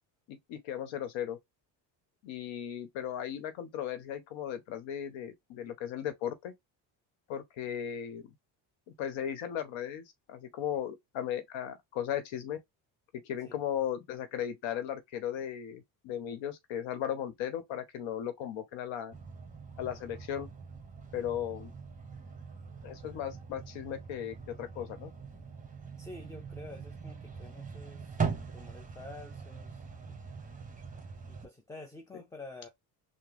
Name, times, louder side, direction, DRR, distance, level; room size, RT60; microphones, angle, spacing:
voice 1, 0.3-1.4 2.2-6.5 7.3-8.2 8.9-12.6 13.1-19.1 19.8-20.5 21.1-21.7 22.8-25.1, left 10 dB, 75° left, 1.1 m, -36 dB
sound 1, 19.1-31.5, right 5 dB, 15° right, 1.2 m, -42 dB
voice 2, 26.0-30.2 31.3-32.7, left 2 dB, 5° left, 0.6 m, -49 dB
3.6 x 2.1 x 3.3 m
supercardioid pair, 85°, 46 cm